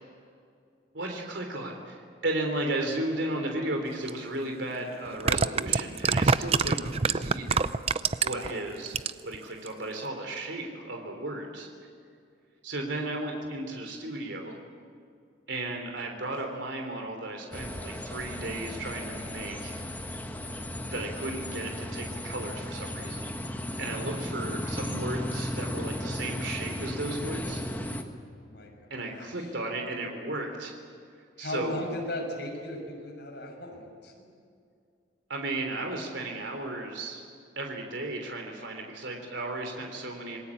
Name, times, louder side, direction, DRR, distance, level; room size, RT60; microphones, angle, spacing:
voice 1, 0.9-7.6 8.2-9.0 9.2-11.7 12.6-14.6 15.5-19.7 20.9-27.6 28.9-30.7 31.4-31.8 35.3-37.2 37.6-40.4, right 2 dB, 75° right, 3 dB, 3.5 m, -34 dB
sound 1, 4.1-4.2 5.1-8.5 8.9-9.4 9.7-9.8, right 5 dB, 30° right, 0.5 m, -25 dB
sound 2, 17.5-28.0, left 1 dB, 10° left, 1.5 m, -35 dB
voice 2, 20.4-20.9 23.9-24.1 28.3-28.7 29.1-29.5 31.4-34.1, left 1 dB, 65° left, 0 dB, 6.3 m, -37 dB
27.5 x 20.0 x 8.6 m, 2.3 s
head